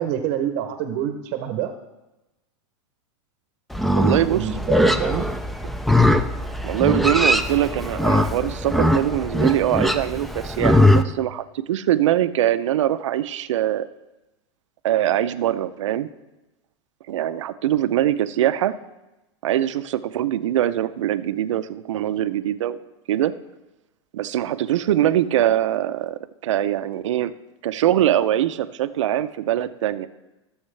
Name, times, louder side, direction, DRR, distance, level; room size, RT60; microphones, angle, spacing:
voice 1, 0.0-1.7 4.3-5.3, right 9 dB, 45° right, 7 dB, 0.8 m, -26 dB
Livestock farm animals working animals, 3.7-11.0, left 1 dB, ahead, 0.3 m, -20 dB
voice 2, 3.9-4.5 6.6-13.9 14.8-16.1 17.1-18.7 19.4-22.8 23.1-23.3 24.1-27.3 27.6-30.1, right 12 dB, 90° right, 13 dB, 0.6 m, -22 dB
15.0 x 7.2 x 3.3 m, 1.0 s
supercardioid pair, 145°, 15 cm